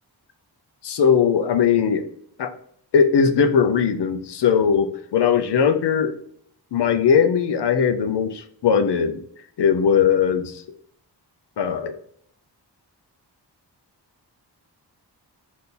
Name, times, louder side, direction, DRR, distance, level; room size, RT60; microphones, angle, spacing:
voice 1, 0.8-2.1 2.4-2.5 2.9-6.2 6.7-9.2 9.6-10.6 11.6-11.9, left 7 dB, 70° left, 8 dB, 0.6 m, -19 dB
4.2 x 2.7 x 3.7 m, 0.65 s
wide cardioid pair, 170°, 42 cm